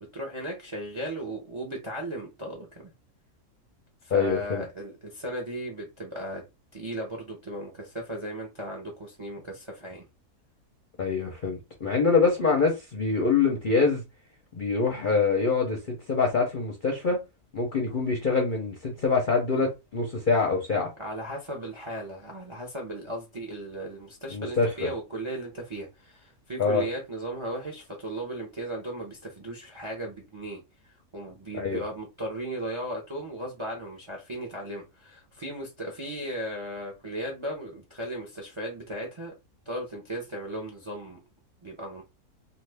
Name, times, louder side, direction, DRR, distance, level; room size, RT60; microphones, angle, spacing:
voice 1, 0.1-2.8 4.0-6.4 6.7-10.1 21.0-30.6 31.1-39.3 39.7-41.2 41.6-42.0, right 1 dB, 35° right, 0.4 m, -36 dB
voice 2, 4.1-4.6 11.0-14.0 14.5-17.2 17.5-20.9 24.3-24.9 26.6-26.8 31.5-31.8, left 4 dB, 50° left, 0.6 m, -25 dB
2.5 x 2.4 x 3.3 m
omnidirectional pair, 1.6 m